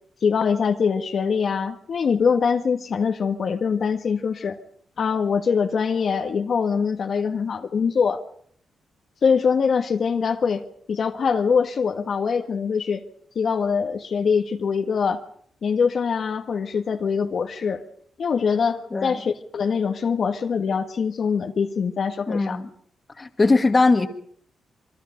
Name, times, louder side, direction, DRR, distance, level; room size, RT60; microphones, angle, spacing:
voice 1, 0.2-4.6 5.0-8.2 9.2-13.0 13.3-15.2 15.6-17.8 18.2-22.6, left 6 dB, 60° left, 5 dB, 1.6 m, -23 dB
voice 2, 18.9-19.2 22.3-22.7 23.2-24.1, left 3 dB, 30° left, 8 dB, 1.9 m, -20 dB
27.0 x 23.0 x 5.1 m, 0.63 s
cardioid pair, 80°, 0 cm